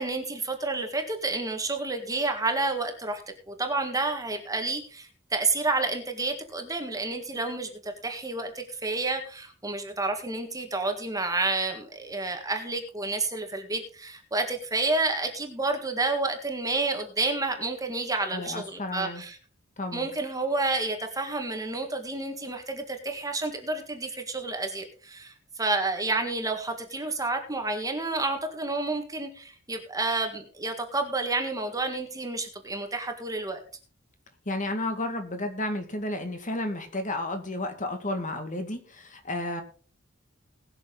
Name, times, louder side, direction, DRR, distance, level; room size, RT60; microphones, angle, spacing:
voice 1, 0.0-3.2 3.5-19.4 19.9-33.6, right 3 dB, 15° right, 5 dB, 1.7 m, -30 dB
voice 2, 18.3-19.2 19.8-20.1 34.5-39.6, left 2 dB, 40° left, 6 dB, 2.0 m, -32 dB
20.0 x 6.8 x 3.9 m, 0.40 s
head